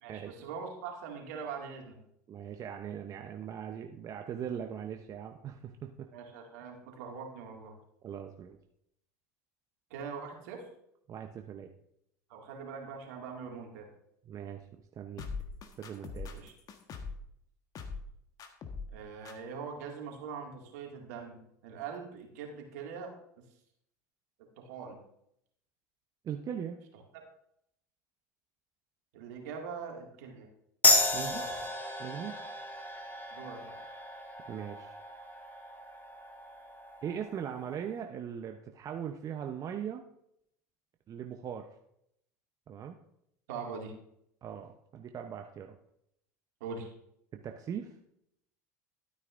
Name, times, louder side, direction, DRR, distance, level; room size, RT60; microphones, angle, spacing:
voice 1, 0.0-2.0 6.1-7.8 9.9-10.6 12.3-13.9 16.3-16.5 18.9-23.1 24.6-25.0 29.1-30.5 31.1-31.5 33.3-33.6 43.5-43.9 46.6-46.9, right 5 dB, 75° right, 1 dB, 2.1 m, -42 dB
voice 2, 2.3-6.1 8.0-8.6 11.1-11.7 14.3-14.6 15.0-15.2 15.8-16.3 26.2-26.8 31.1-31.4 32.0-32.4 34.5-35.0 37.0-40.0 41.1-41.7 42.7-43.0 44.4-45.8 47.4-47.9, right 8 dB, 40° right, 4 dB, 0.8 m, -40 dB
sound 1, 15.2-17.3 17.7-18.1 18.4-19.0 19.2-19.3, left 4 dB, 45° left, 1.3 m, -41 dB
sound 2, 30.8-37.9, left 2 dB, 20° left, 1.6 m, -32 dB
12.0 x 9.5 x 2.6 m, 0.75 s
hypercardioid pair, 85°, 9 cm